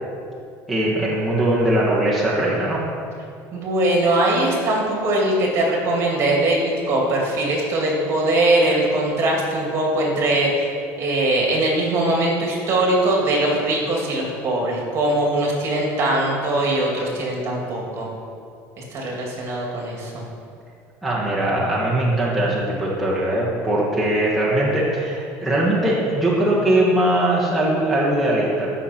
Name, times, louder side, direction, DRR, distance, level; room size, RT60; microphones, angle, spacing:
voice 1, 0.7-2.8 21.0-28.7, right 1 dB, ahead, -8 dB, 1.5 m, -20 dB
voice 2, 3.5-10.7 11.0-18.1 18.9-20.2, right 1 dB, 40° right, -1 dB, 2.3 m, -21 dB
14.0 x 5.9 x 4.4 m, 2.4 s
cardioid pair, 150°, 7 cm